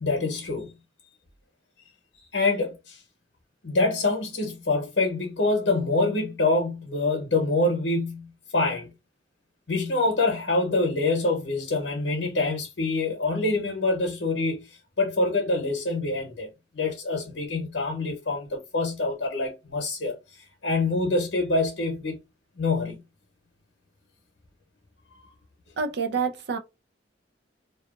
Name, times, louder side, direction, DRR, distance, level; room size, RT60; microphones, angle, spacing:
voice 1, 0.0-0.7 2.3-3.0 3.6-8.9 9.7-14.7 15.0-16.5 16.7-22.2 22.6-23.0, left 2 dB, 80° left, 0.8 m, -26 dB
voice 2, 25.8-26.6, right 5 dB, 65° right, 0.5 m, -27 dB
2.7 x 2.3 x 2.4 m
head